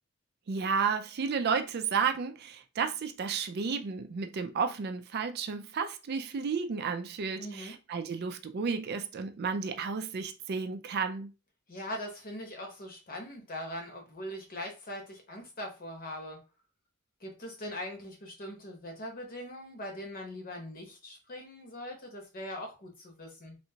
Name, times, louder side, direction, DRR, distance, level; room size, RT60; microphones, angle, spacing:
voice 1, 0.5-11.3, right 5 dB, 50° right, 0.4 m, -32 dB
voice 2, 7.4-7.8 11.7-16.4 17.2-23.6, left 1 dB, 45° left, 1.0 m, -41 dB
3.4 x 2.8 x 2.8 m
head